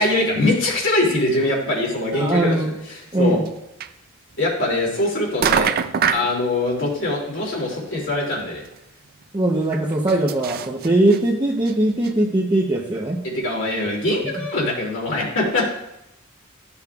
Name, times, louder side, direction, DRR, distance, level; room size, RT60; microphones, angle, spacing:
voice 1, 0.0-2.6 2.9-3.4 4.4-5.7 6.1-8.6 13.2-15.7, left 2 dB, 65° left, -2 dB, 2.6 m, -22 dB
voice 2, 2.1-2.7 3.1-3.4 9.3-13.2, right 1 dB, 20° right, -2 dB, 0.7 m, -20 dB
sound 1, 3.5-3.6 3.8-3.9 5.0-5.1 5.4-6.3 7.9-8.0 8.3-8.4 8.6-8.7 9.7-11.2 11.7-11.8 12.0-12.1, right 7 dB, 45° right, 0.4 m, -23 dB
13.0 x 7.0 x 2.4 m, 0.86 s
head